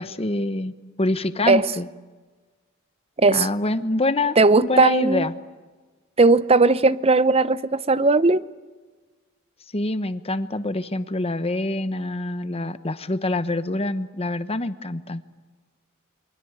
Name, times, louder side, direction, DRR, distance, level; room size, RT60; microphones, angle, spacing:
voice 1, 0.0-1.9 3.3-5.3 9.7-15.2, left 2 dB, 30° left, 1.1 m, -26 dB
voice 2, 4.4-5.3 6.2-8.4, right 3 dB, 30° right, 0.7 m, -17 dB
29.0 x 24.0 x 8.1 m
head